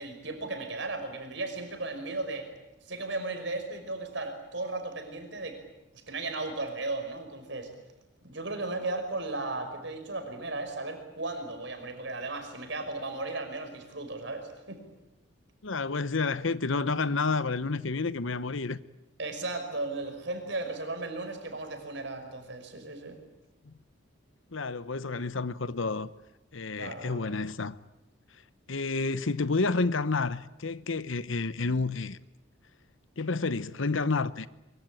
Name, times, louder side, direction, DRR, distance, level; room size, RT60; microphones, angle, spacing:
voice 1, 0.0-2.5 2.8-5.6 5.9-7.7 8.2-14.8 19.2-23.2 26.8-27.3, right 2 dB, 60° right, 5.7 m, -36 dB
voice 2, 15.6-18.8 23.7-23.8 24.5-26.1 26.5-27.8 28.7-32.2 33.2-34.5, left 3 dB, 75° left, 0.9 m, -30 dB
24.5 x 24.0 x 9.2 m
head